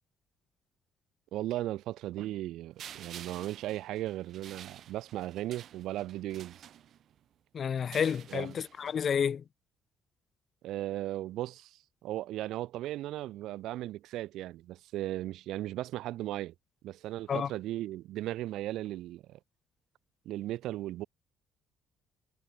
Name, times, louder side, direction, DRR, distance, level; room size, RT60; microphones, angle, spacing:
voice 1, 1.3-6.6 8.3-8.6 10.6-16.5 16.8-19.4 20.3-21.0, right 15 dB, 70° right, 2.5 m, -37 dB
sound 1, 2.8-7.2 7.8-9.1, right 10 dB, 50° right, 3.3 m, -50 dB
voice 2, 7.5-9.4 17.3-17.5, left 7 dB, 35° left, 1.1 m, -30 dB
cardioid pair, 160°, 0 cm